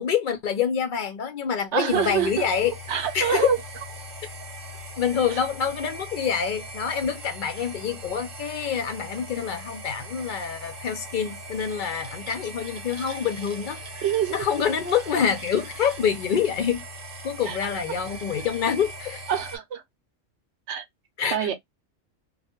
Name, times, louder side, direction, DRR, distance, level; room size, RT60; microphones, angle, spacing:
voice 1, 0.0-2.7 3.1-3.5 5.0-14.0 14.3-16.8 17.2-19.2 21.2-21.5, left 7 dB, 60° left, 0.5 m, -26 dB
voice 2, 1.7-2.5 2.9-3.6 5.3-5.4 14.0-14.3 17.4-17.6 19.3-19.8 20.7-20.9 21.3-21.5, right 9 dB, 70° right, 0.8 m, -25 dB
sound 1, 1.9-19.6, equal, 85° right, 1.1 m, -40 dB
2.3 x 2.2 x 2.8 m
omnidirectional pair, 1.3 m